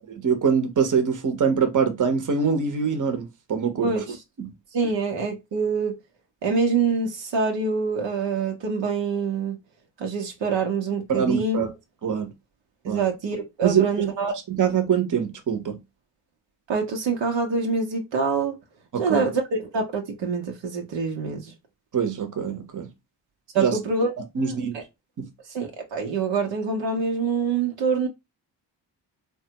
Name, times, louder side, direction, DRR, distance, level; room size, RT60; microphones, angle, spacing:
voice 1, 0.1-3.9 4.4-4.5 11.1-11.7 12.0-12.3 12.9-13.1 13.6-13.8 14.5-15.8 18.9-19.2 21.9-22.9 23.5-23.7 24.3-24.7 25.2-25.3, right 6 dB, 45° right, 1.0 m, -24 dB
voice 2, 3.8-4.2 4.7-6.0 6.4-9.6 10.0-11.6 12.8-14.3 16.7-18.6 19.0-21.5 23.5-24.1 24.4-24.8 25.5-28.1, right 4 dB, 70° right, 1.0 m, -25 dB
3.4 x 2.3 x 2.8 m
supercardioid pair, 60°, 45 cm